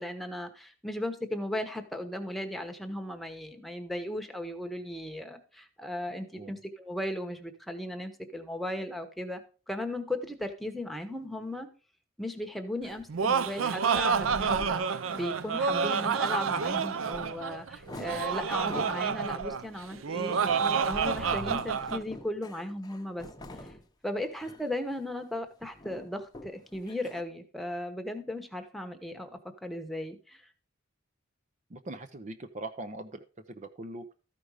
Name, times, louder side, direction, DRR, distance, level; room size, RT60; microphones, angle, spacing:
voice 1, 0.0-9.4 9.7-11.7 12.2-23.3 24.0-29.3 29.6-30.4, left 1 dB, ahead, 5 dB, 1.1 m, -36 dB
Laughter, 12.9-22.0, right 6 dB, 85° right, 0.5 m, -29 dB
sound 1, 17.1-17.3 17.7-19.1 19.5-23.8 24.2-24.7 25.0-25.2 25.5-27.2, left 1 dB, 20° left, 0.8 m, -46 dB
voice 2, 31.7-34.1, right 2 dB, 40° right, 8 dB, 0.6 m, -41 dB
13.5 x 5.2 x 4.9 m, 0.36 s
head